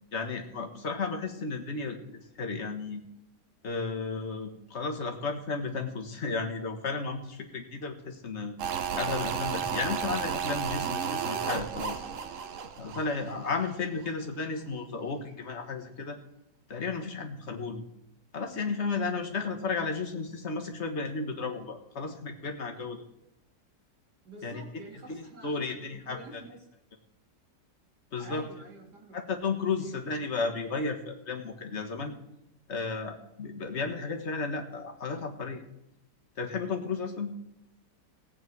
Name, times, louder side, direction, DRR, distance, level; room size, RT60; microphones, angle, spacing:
voice 1, 0.1-2.0 2.4-3.0 3.6-8.5 8.9-12.0 12.8-16.2 16.7-17.8 18.3-23.0 24.4-24.6 25.1-25.2 25.4-26.4 28.1-28.5 29.1-32.1 32.7-35.6 36.4-37.3, left 4 dB, 45° left, 4 dB, 1.6 m, -33 dB
sound 1, 8.6-13.8 14.0-14.1, right 7 dB, 55° right, 1.1 m, -33 dB
voice 2, 24.2-26.7 28.2-29.2 29.8-30.0, right 2 dB, 70° right, 0 dB, 2.8 m, -48 dB
17.5 x 8.5 x 4.7 m, 0.86 s
omnidirectional pair, 1.8 m